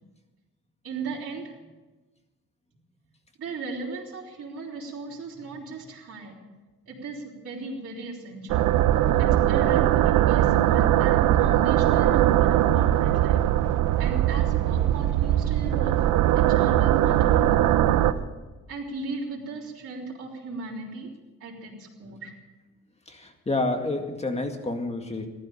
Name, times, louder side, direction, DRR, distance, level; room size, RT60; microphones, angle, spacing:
voice 1, 0.8-1.7 3.4-6.4 6.9-8.7 9.2-13.5 14.0-16.0 16.3-17.9 18.7-21.1 21.4-22.3, right 3 dB, 50° right, -5 dB, 4.4 m, -36 dB
sound 1, 8.5-18.1, right 12 dB, 85° right, 0.8 m, -21 dB
voice 2, 23.1-25.3, left 2 dB, 20° left, 5 dB, 2.1 m, -29 dB
15.0 x 12.0 x 7.2 m, 1.2 s
cardioid pair, 90°, 30 cm